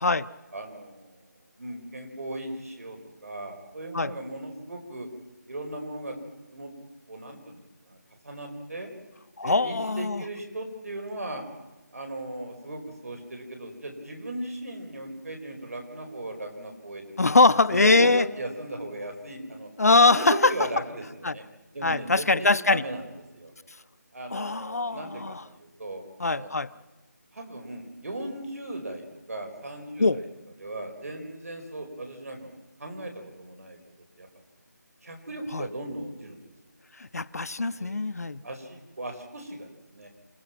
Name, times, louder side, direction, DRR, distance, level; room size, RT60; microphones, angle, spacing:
voice 1, 0.5-1.2 1.6-5.1 5.5-6.2 6.5-6.7 7.1-7.6 7.9-8.0 8.2-8.9 9.4-11.4 11.9-17.1 17.7-19.7 20.1-21.4 21.7-23.0 23.3-23.5 24.1-26.5 27.3-30.3 30.6-33.8 34.2-34.3 35.0-36.4 37.8-38.0 38.4-40.1, right 1 dB, 55° right, 4 dB, 4.9 m, -37 dB
voice 2, 9.4-10.2 17.2-18.3 19.8-20.5 21.2-21.3 21.8-22.8 24.3-25.4 26.2-26.7 30.0-30.2 35.5-35.7 37.1-38.4, left 3 dB, 60° left, 15 dB, 0.7 m, -22 dB
28.5 x 16.0 x 6.0 m, 1.1 s
figure-of-eight pair, 175°, 10 cm